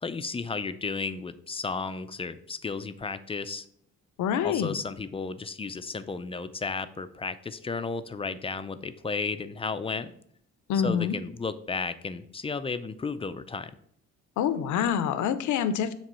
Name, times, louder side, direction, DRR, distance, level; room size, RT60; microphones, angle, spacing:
voice 1, 0.0-3.7 4.4-10.1 10.8-13.7, left 4 dB, 20° left, 11 dB, 0.4 m, -33 dB
voice 2, 4.2-4.8 10.7-11.1 14.4-15.9, left 8 dB, 75° left, 12 dB, 0.6 m, -26 dB
7.4 x 3.0 x 5.4 m, 0.67 s
cardioid pair, 90°, 30 cm